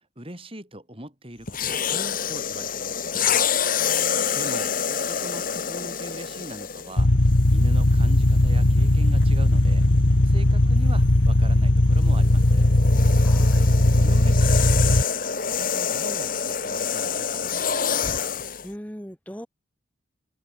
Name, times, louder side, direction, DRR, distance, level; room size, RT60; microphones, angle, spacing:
voice 1, 0.2-3.2 4.3-4.7 5.1-7.1 7.5-9.9 10.2-12.7 13.9-15.1 15.6-18.0, right 1 dB, 30° right, 7.3 m, -41 dB
sound 1, 1.5-7.0 7.8-8.0 12.0-18.7, left 7 dB, 45° left, 1.5 m, -27 dB
voice 2, 3.8-4.6 13.2-13.7 18.6-19.5, equal, 5° left, 3.2 m, -40 dB
sound 2, 7.0-15.0, left 1 dB, 70° left, 1.7 m, -18 dB
head